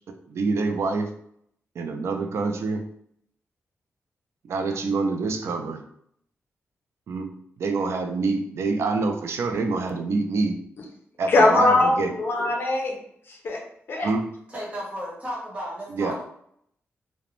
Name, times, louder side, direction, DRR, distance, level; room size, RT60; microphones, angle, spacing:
voice 1, 0.3-1.1 1.8-2.9 4.4-5.8 7.1-10.6 11.2-12.1 14.0-14.3 15.9-16.2, right 3 dB, 65° right, 5 dB, 0.3 m, -26 dB
voice 2, 11.3-13.0 13.3-13.6 13.9-14.1, left 2 dB, 50° left, 1 dB, 0.5 m, -21 dB
voice 3, 14.5-16.2, equal, 25° right, -6 dB, 0.9 m, -34 dB
2.4 x 2.1 x 2.9 m, 0.69 s
wide cardioid pair, 155°, 5 cm